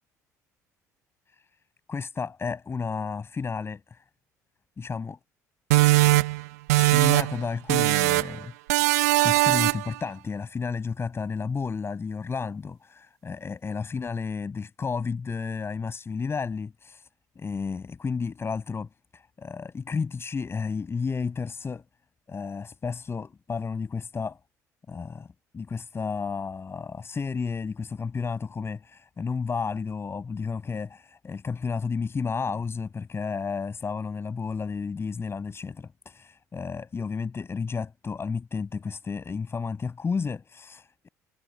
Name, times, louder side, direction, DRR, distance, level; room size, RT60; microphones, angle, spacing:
voice 1, 1.9-4.0 4.8-5.2 6.0-6.2 6.7-8.5 9.2-17.1 17.4-21.8 22.3-24.4 24.9-25.3 25.5-41.1, left 5 dB, 25° left, 7.2 m, -32 dB
sound 1, 5.7-7.4 7.7-8.4 8.7-10.0, right 20 dB, 65° right, 1.3 m, -21 dB
figure-of-eight pair, 55°, 9 cm